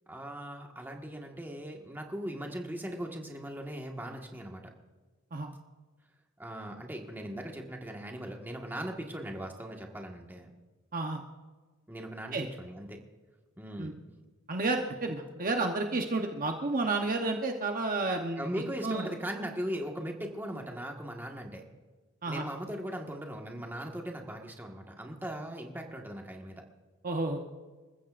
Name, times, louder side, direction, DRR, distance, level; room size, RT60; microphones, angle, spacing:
voice 1, 0.1-4.6 6.4-10.5 11.9-13.0 13.6-14.0 18.3-21.6 22.3-26.6, right 1 dB, 10° right, 1 dB, 1.6 m, -39 dB
voice 2, 14.5-18.4 18.8-19.1 22.2-22.4 27.0-27.4, right 3 dB, 45° right, 3 dB, 1.0 m, -31 dB
27.5 x 14.5 x 2.5 m, 1.3 s
head